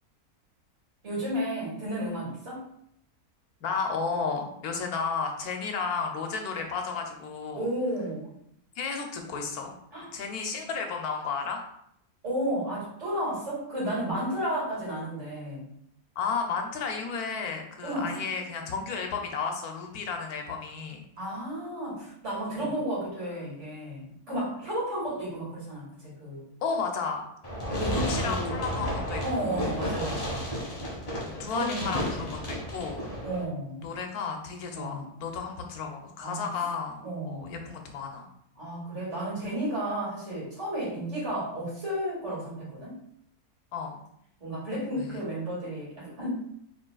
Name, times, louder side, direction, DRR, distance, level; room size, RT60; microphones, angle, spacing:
voice 1, 1.0-2.7 7.5-8.3 9.9-10.1 12.2-15.7 17.8-18.3 21.2-26.5 27.7-28.6 29.2-30.4 31.3-32.2 33.2-33.9 34.7-35.1 36.2-36.5 37.0-37.5 38.6-43.0 44.4-46.4, right 1 dB, 55° right, -7 dB, 2.5 m, -33 dB
voice 2, 3.6-7.6 8.8-9.7 10.1-11.6 16.2-21.0 22.6-22.7 24.3-24.4 26.6-27.2 27.9-29.7 31.1-33.0 33.8-38.3 43.7-44.0 44.9-45.2, left 5 dB, 90° left, 3 dB, 1.3 m, -33 dB
Fireworks, 27.4-33.4, equal, 25° left, 1.4 m, -32 dB
5.0 x 4.3 x 2.3 m, 0.71 s
omnidirectional pair, 1.6 m